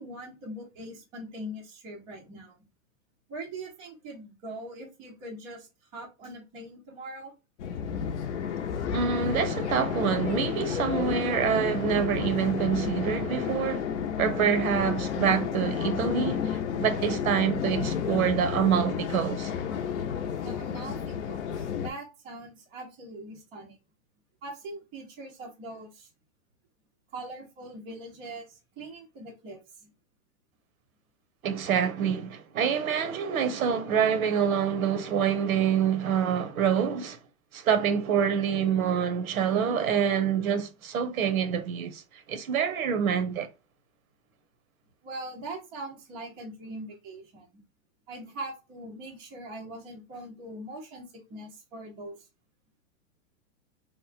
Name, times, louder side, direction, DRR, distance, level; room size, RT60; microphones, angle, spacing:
voice 1, 0.0-2.6 3.3-5.7 5.9-7.3 20.4-23.8 24.4-26.1 27.1-29.9 33.7-33.8 45.0-47.5 48.1-52.1, right 1 dB, 10° right, 0.5 m, -42 dB
sound 1, 7.6-21.9, left 7 dB, 55° left, 0.6 m, -31 dB
voice 2, 8.9-13.9 14.2-19.5 31.4-37.2 37.5-43.5, right 7 dB, 80° right, 0.8 m, -26 dB
2.9 x 2.1 x 4.0 m
hypercardioid pair, 165°, 41 cm